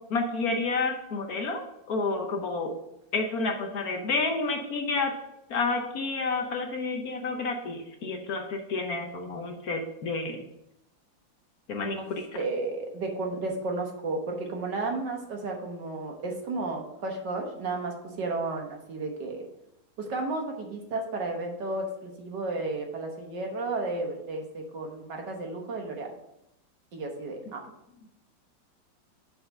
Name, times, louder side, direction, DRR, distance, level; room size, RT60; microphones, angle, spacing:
voice 1, 0.1-2.7 3.1-5.1 5.5-10.4 11.7-12.3, left 3 dB, 60° left, 3 dB, 1.2 m, -30 dB
voice 2, 12.3-19.4 20.0-26.1 26.9-27.6, right 3 dB, 65° right, 2 dB, 1.9 m, -33 dB
7.0 x 4.4 x 6.4 m, 0.83 s
omnidirectional pair, 2.1 m